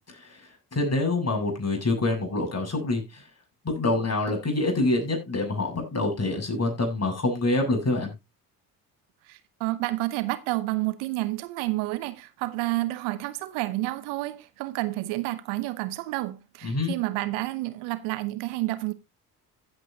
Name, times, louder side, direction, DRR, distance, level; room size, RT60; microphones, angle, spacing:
voice 1, 0.1-3.2 3.6-8.1 16.6-16.9, left 2 dB, 30° left, 7.3 m, -26 dB
voice 2, 9.3-18.9, right 18 dB, 75° right, 1.1 m, -30 dB
15.0 x 8.1 x 2.8 m
hypercardioid pair, 55°, 49 cm